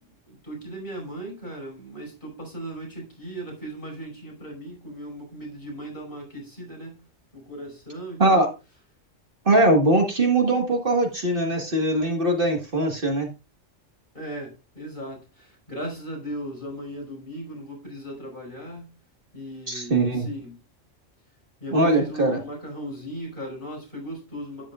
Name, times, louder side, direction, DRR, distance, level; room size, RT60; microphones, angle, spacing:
voice 1, 0.3-7.0 7.3-8.5 14.1-18.9 19.3-20.6 21.6-24.7, right 1 dB, 45° left, 5.6 m, -37 dB
voice 2, 9.5-13.3 19.7-20.3 21.7-22.4, right 2 dB, 45° right, 1.8 m, -21 dB
12.0 x 10.0 x 2.4 m
omnidirectional pair, 1.3 m